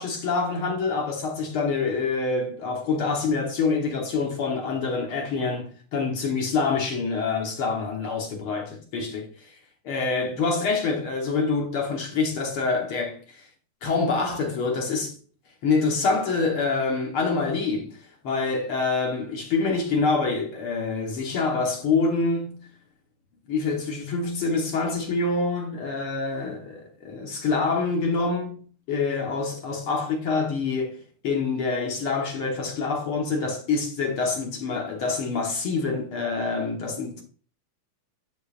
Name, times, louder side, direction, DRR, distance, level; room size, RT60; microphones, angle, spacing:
voice 1, 0.0-9.3 9.8-13.4 13.8-15.2 15.6-22.7 23.5-28.6 28.9-37.2, left 4 dB, 55° left, 1.7 m, -26 dB
10.5 x 5.6 x 2.5 m
omnidirectional pair, 3.6 m